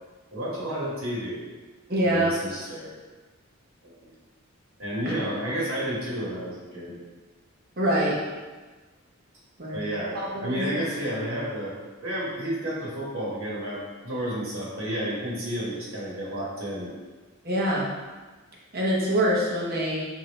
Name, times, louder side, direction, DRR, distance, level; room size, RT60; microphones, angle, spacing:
voice 1, 0.3-1.4 2.0-2.9 3.8-4.1 4.8-6.9 7.8-7.9 9.7-11.7 12.0-16.9, equal, 85° right, -6 dB, 1.2 m, -31 dB
voice 2, 1.9-2.4 5.1-5.2 7.8-8.2 9.6-9.8 10.1-10.7 17.4-17.9 18.7-20.1, right 1 dB, 45° right, -4 dB, 0.8 m, -25 dB
3.2 x 2.6 x 4.0 m, 1.3 s
head